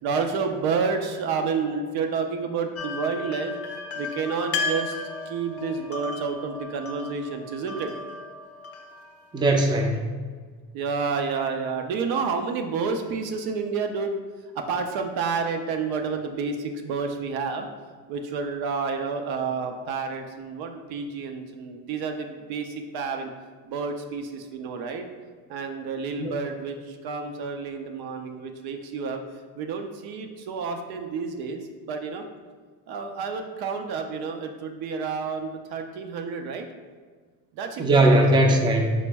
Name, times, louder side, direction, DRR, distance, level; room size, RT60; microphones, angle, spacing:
voice 1, 0.0-3.6 3.9-7.9 10.7-14.2 14.5-17.7 18.1-23.3 23.7-25.1 25.5-29.2 29.6-32.2 32.9-36.7 37.6-38.6, right 5 dB, 65° right, 5 dB, 0.5 m, -30 dB
sound 1, 2.7-9.7, left 3 dB, 35° left, 0.6 m, -35 dB
voice 2, 9.3-10.0 26.2-26.3 37.8-38.9, right 1 dB, 10° right, 1 dB, 0.4 m, -19 dB
3.9 x 2.1 x 3.3 m, 1.5 s
supercardioid pair, 80°, 41 cm